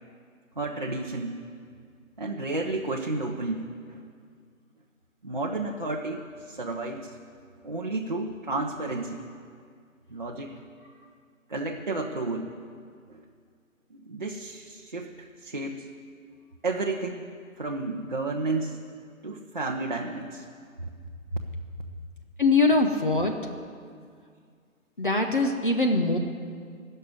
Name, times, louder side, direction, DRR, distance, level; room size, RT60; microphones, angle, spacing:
voice 1, 0.6-1.4 2.2-4.0 5.2-7.2 7.6-9.2 10.1-10.6 11.5-12.5 13.1-13.2 13.9-15.8 16.6-17.3 17.6-18.8 19.2-20.4 20.8-20.9 21.3-21.4, right 2 dB, 35° right, -1 dB, 0.7 m, -32 dB
voice 2, 22.4-23.4 25.0-26.2, left 3 dB, 35° left, 4 dB, 0.8 m, -22 dB
16.5 x 6.6 x 9.5 m, 2.1 s
hypercardioid pair, 175°, 42 cm